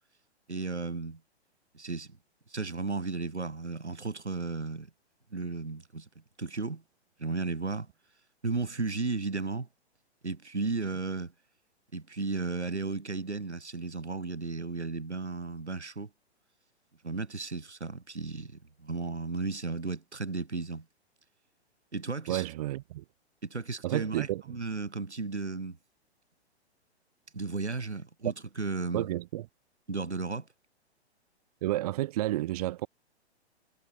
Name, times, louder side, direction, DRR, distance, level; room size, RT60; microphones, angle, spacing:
voice 1, 0.5-1.2 1.7-2.2 2.5-4.9 5.3-6.1 6.4-6.8 7.2-7.9 8.4-9.7 10.2-11.3 11.9-16.1 17.0-20.9 21.9-22.4 23.4-25.8 27.3-29.1 29.9-30.5, right 3 dB, 80° right, 2.2 m, -34 dB
voice 2, 22.3-23.0 23.8-24.4 28.9-29.5 31.6-32.9, right 15 dB, 35° right, 0.9 m, -31 dB
figure-of-eight pair, 115°, 33 cm